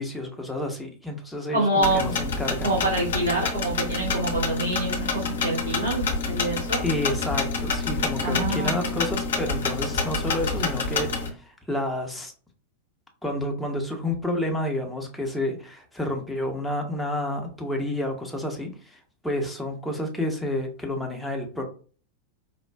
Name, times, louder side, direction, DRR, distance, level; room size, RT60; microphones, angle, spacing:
voice 1, 0.0-2.8 6.8-12.3 13.2-21.7, left 1 dB, 5° left, 2 dB, 0.8 m, -30 dB
voice 2, 1.5-2.1 2.6-6.8 8.2-9.0, right 1 dB, 70° right, -4 dB, 1.1 m, -26 dB
sound 1, 1.8-11.3, left 4 dB, 60° left, 0.7 m, -28 dB
4.4 x 2.3 x 2.2 m, 0.40 s
figure-of-eight pair, 90°, 0 cm